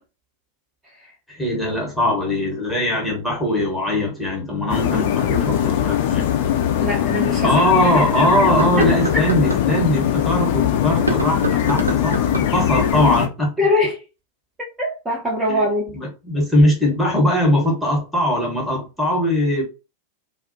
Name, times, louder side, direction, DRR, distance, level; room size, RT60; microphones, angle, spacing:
voice 1, 1.3-6.3 7.4-13.5 15.5-15.6 15.9-19.6, left 1 dB, 5° left, 1.0 m, -20 dB
sound 1, 4.7-13.3, left 10 dB, 50° left, 0.4 m, -21 dB
sound 2, 6.5-6.6 7.2-7.3 8.4-9.7 10.9-12.6, right 2 dB, 80° right, 0.5 m, -26 dB
voice 2, 6.8-8.0 8.4-9.3 13.6-14.0 14.8-15.9, left 1 dB, 15° right, 0.7 m, -23 dB
2.4 x 2.0 x 2.6 m
figure-of-eight pair, 90°, 0 cm